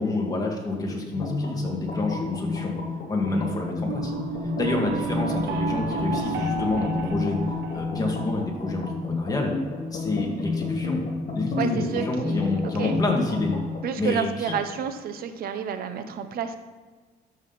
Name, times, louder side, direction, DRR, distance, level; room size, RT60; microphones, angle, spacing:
voice 1, 0.0-2.7 3.1-4.1 4.6-7.4 7.7-9.5 9.9-11.0 11.3-13.5 14.0-14.6, left 2 dB, 20° left, -1 dB, 2.2 m, -28 dB
sound 1, 1.1-13.9, left 3 dB, 40° left, 2.8 m, -31 dB
sound 2, 3.8-8.9, right 4 dB, 85° right, 1.0 m, -32 dB
voice 2, 11.6-13.0 13.8-16.6, right 7 dB, 65° right, 9 dB, 0.9 m, -30 dB
12.5 x 6.3 x 4.1 m, 1.4 s
cardioid pair, 110°, 17 cm